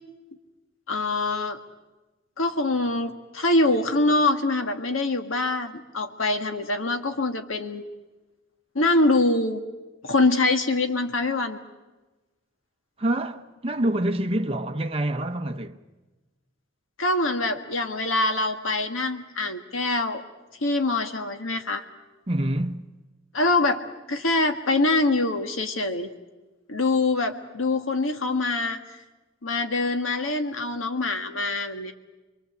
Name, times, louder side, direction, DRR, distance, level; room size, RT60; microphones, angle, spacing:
voice 1, 0.9-1.6 2.4-7.8 8.8-9.6 10.0-11.6 17.0-20.2 20.6-21.8 23.3-23.8 24.1-26.1 26.7-28.8 29.4-31.9, left 2 dB, 90° left, 1.8 m, -24 dB
voice 2, 13.0-15.8 22.3-22.9, right 1 dB, 30° right, 0.9 m, -26 dB
26.0 x 22.5 x 8.1 m
head